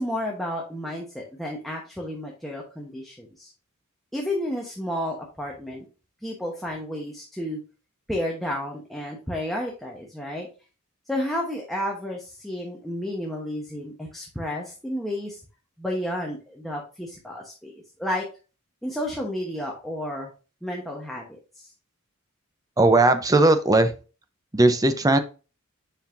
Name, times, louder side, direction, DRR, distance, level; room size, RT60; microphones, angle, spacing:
voice 1, 0.0-3.5 4.1-5.8 6.2-7.6 8.1-10.5 11.1-15.4 15.8-18.3 18.8-20.3 20.6-21.7, left 1 dB, ahead, -2 dB, 1.0 m, -31 dB
voice 2, 22.8-23.9 24.5-25.2, right 2 dB, 15° right, 9 dB, 0.6 m, -18 dB
7.1 x 5.5 x 2.6 m, 0.33 s
head